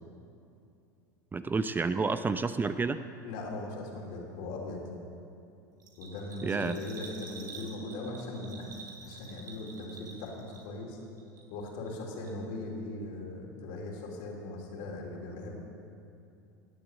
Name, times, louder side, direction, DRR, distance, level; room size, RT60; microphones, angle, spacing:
voice 1, 1.3-3.0 6.4-6.8, right 4 dB, 20° right, 11 dB, 0.6 m, -29 dB
voice 2, 3.2-4.8 6.0-8.7 9.0-11.0 11.5-15.5, left 2 dB, 65° left, -1 dB, 3.5 m, -39 dB
Bell, 5.8-10.9 11.2-12.0 12.2-12.3, right 4 dB, 85° right, 2.8 m, -48 dB
18.0 x 7.8 x 8.0 m, 2.6 s
hypercardioid pair, 90°, 10 cm